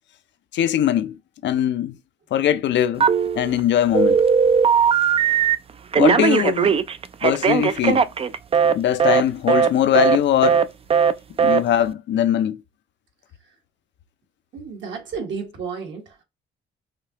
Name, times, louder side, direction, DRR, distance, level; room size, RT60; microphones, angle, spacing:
voice 1, 0.5-1.9 2.3-3.1 3.3-4.2 6.0-6.7 7.2-8.1 8.7-10.6 11.4-12.6, left 10 dB, 65° left, 0.5 m, -21 dB
Telephone, 3.0-3.6 3.9-5.5 5.9-8.7 9.0-9.2 9.5-9.7 9.9-10.2 10.4-10.6 10.9-11.1 11.4-11.6, right 6 dB, 30° right, 0.3 m, -18 dB
voice 2, 14.5-16.2, right 5 dB, 70° right, 1.4 m, -32 dB
5.0 x 2.7 x 2.9 m
cardioid pair, 90°, 20 cm